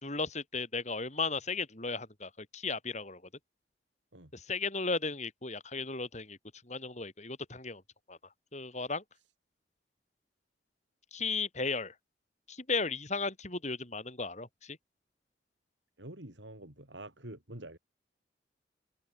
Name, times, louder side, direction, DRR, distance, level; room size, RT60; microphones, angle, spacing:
voice 1, 0.0-3.2 4.3-6.4 6.6-7.8 8.1-8.2 8.5-9.0 11.1-11.9 12.5-14.8, left 4 dB, 40° left, 4.0 m, -35 dB
voice 2, 16.0-17.8, right 1 dB, 90° right, 6.1 m, -46 dB
head